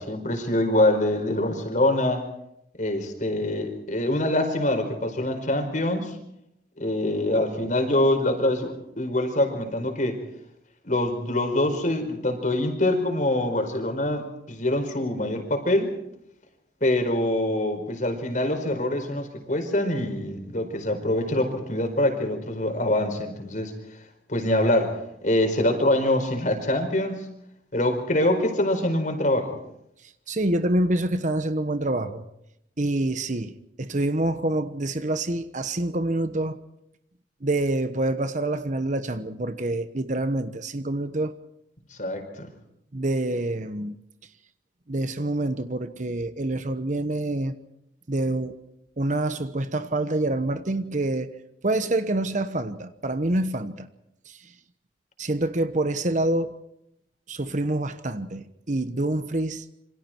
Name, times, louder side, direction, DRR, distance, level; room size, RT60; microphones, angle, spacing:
voice 1, 0.0-2.2 2.8-6.2 6.8-10.2 10.9-15.9 16.8-23.7 24.3-27.3 27.7-29.5 41.9-42.5, left 1 dB, 45° left, 4.9 m, -24 dB
voice 2, 30.3-32.2 32.8-36.6 37.4-41.3 42.9-44.0 44.9-47.5 48.1-48.6 49.0-51.3 51.6-53.9 54.3-54.4 55.2-56.5 57.3-59.6, right 2 dB, 45° right, 1.1 m, -26 dB
27.5 x 25.5 x 4.6 m
head